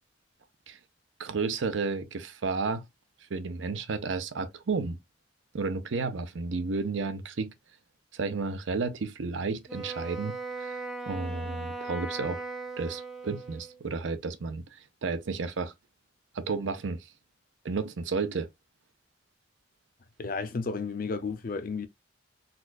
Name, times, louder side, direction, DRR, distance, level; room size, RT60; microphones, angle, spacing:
voice 1, 1.2-2.8 3.3-5.0 5.5-7.5 8.1-10.8 11.1-12.4 12.8-15.7 16.3-17.1 17.6-18.5, right 4 dB, 85° right, 0.6 m, -32 dB
Wind instrument woodwind instrument, 9.7-13.8, right 3 dB, ahead, 0.6 m, -38 dB
voice 2, 20.2-21.9, left 4 dB, 50° left, 0.6 m, -32 dB
4.1 x 2.3 x 2.4 m
head